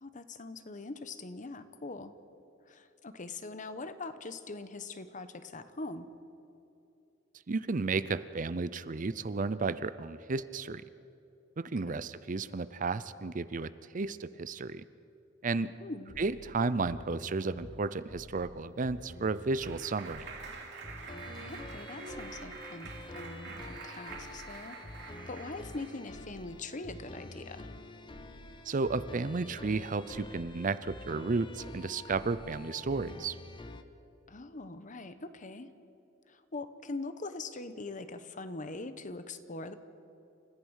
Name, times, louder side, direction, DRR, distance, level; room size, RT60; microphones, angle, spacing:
voice 1, 0.0-2.1 2.6-6.1 11.9-12.0 15.8-16.1 21.4-27.7 34.3-35.7 36.3-39.8, left 3 dB, 40° left, 11 dB, 1.0 m, -42 dB
voice 2, 7.5-10.8 11.6-14.8 15.4-15.7 16.2-20.3 28.6-33.4, right 3 dB, 45° right, 15 dB, 0.6 m, -33 dB
sound 1, 16.0-33.8, left 1 dB, 25° left, 0.9 m, -47 dB
Clapping, 18.8-26.1, right 4 dB, 65° right, 2.8 m, -46 dB
29.0 x 14.5 x 6.4 m, 2.8 s
head